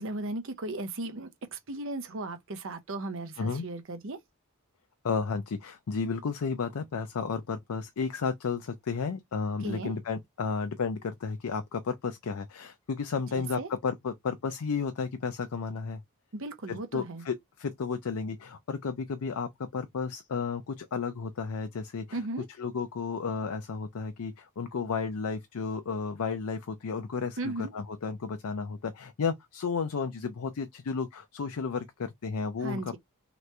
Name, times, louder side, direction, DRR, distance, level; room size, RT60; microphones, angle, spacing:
voice 1, 0.0-4.2 9.6-9.9 13.3-13.7 16.3-17.2 22.1-22.5 27.4-27.7 32.6-33.0, right 2 dB, 60° right, 0.7 m, -36 dB
voice 2, 5.0-16.0 16.7-22.2 22.6-33.0, left 5 dB, 75° left, 0.5 m, -33 dB
3.0 x 2.5 x 3.2 m
head